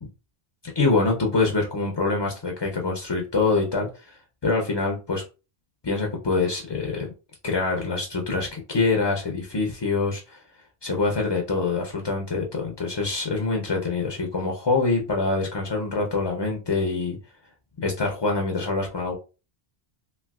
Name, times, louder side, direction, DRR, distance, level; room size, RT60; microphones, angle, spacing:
voice 1, 0.8-5.2 5.8-7.1 7.4-10.4 10.8-17.2 17.8-19.1, left 3 dB, 45° left, 1 dB, 0.3 m, -25 dB
3.1 x 2.8 x 2.3 m, 0.32 s
omnidirectional pair, 1.1 m